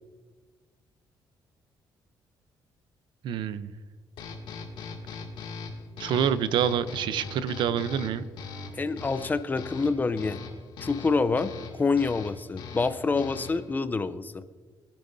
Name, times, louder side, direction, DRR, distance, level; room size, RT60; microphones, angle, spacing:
voice 1, 3.2-3.7 6.0-8.2, right 8 dB, 75° right, 14 dB, 0.6 m, -27 dB
sound 1, 4.2-13.7, left 4 dB, 80° left, 2.3 m, -41 dB
voice 2, 8.7-10.4 10.8-14.4, left 4 dB, 20° left, 13 dB, 0.6 m, -27 dB
22.0 x 10.5 x 2.7 m, 1.5 s
cardioid pair, 120°, 8 cm